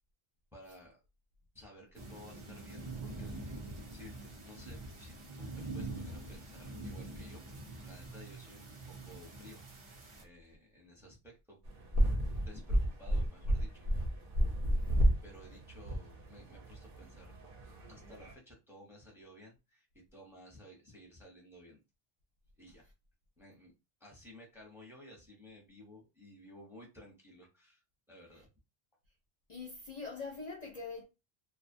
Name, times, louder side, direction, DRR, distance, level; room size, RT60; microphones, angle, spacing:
voice 1, 0.5-1.0 1.5-3.7 3.9-5.5 5.7-9.9 10.2-11.6 12.4-13.9 15.2-17.3 17.9-21.8 22.6-22.9 23.4-23.7 24.0-27.8 28.1-28.5, left 1 dB, 5° right, 0.7 m, -55 dB
sound 1, 1.9-10.2, right 2 dB, 40° right, 0.5 m, -45 dB
sound 2, 11.7-18.3, equal, 65° right, 0.9 m, -32 dB
voice 2, 14.7-15.1 29.5-31.0, left 4 dB, 50° left, 0.6 m, -44 dB
2.5 x 2.3 x 2.6 m
omnidirectional pair, 1.1 m